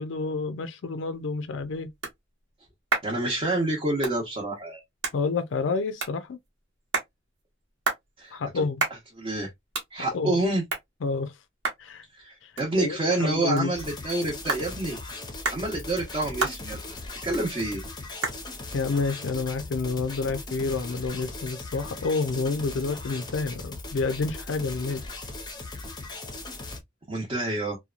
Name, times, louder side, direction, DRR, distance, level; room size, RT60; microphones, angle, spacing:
voice 1, 0.0-1.9 5.1-6.4 8.3-8.8 10.1-10.4 11.0-11.3 11.8-12.0 12.4-12.5 12.8-13.7 18.7-25.0, left 4 dB, 80° left, 0.4 m, -29 dB
sound 1, 1.1-20.4, right 4 dB, 70° right, 1.1 m, -36 dB
voice 2, 3.0-4.8 8.2-8.6 9.2-9.5 9.9-10.6 12.1-15.0 15.5-16.8 17.2-17.8 27.1-27.8, right 2 dB, 30° right, 0.8 m, -28 dB
sound 2, 13.7-26.8, left 2 dB, 25° left, 0.6 m, -39 dB
2.8 x 2.2 x 2.4 m
head